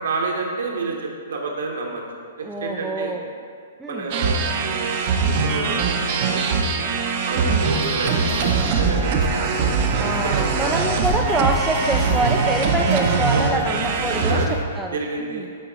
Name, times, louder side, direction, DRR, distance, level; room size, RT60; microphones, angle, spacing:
voice 1, 0.0-3.2 3.9-10.7 12.0-12.3 13.3-13.8 14.1-14.6 14.9-15.6, right 3 dB, 65° right, 0 dB, 1.2 m, -30 dB
voice 2, 2.4-3.2 3.8-4.1 7.3-7.6 10.0-14.4 14.8-15.4, right 2 dB, 5° right, 1 dB, 0.4 m, -26 dB
sound 1, 4.1-14.5, right 5 dB, 45° right, 0.7 m, -22 dB
sound 2, 7.7-14.6, left 3 dB, 30° left, 0.7 m, -34 dB
sound 3, 8.1-13.4, left 3 dB, 55° left, 1.8 m, -37 dB
8.8 x 4.7 x 3.9 m, 2.2 s
figure-of-eight pair, 110°, 0 cm